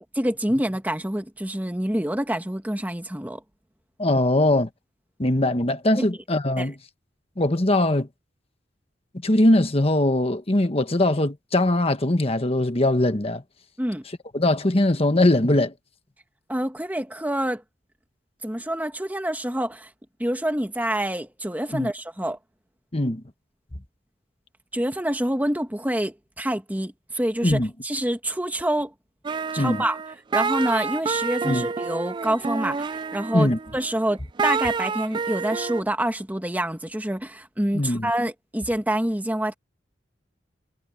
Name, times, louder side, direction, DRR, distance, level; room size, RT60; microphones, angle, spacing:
voice 1, 0.2-3.4 6.0-6.1 6.6-6.7 13.8-14.0 16.5-17.6 18.4-19.9 20.2-22.4 24.7-28.9 29.5-30.0 30.3-39.5, right 1 dB, 10° right, 1.4 m, -27 dB
voice 2, 4.0-4.7 5.2-6.8 7.4-8.1 9.2-13.4 14.3-15.7 21.7-21.9 22.9-23.2 27.4-27.7 29.6-29.8 31.4-31.6 33.3-33.6 37.7-38.1, left 1 dB, 30° left, 1.3 m, -21 dB
sound 1, 29.2-35.8, right 5 dB, 25° right, 0.3 m, -28 dB
head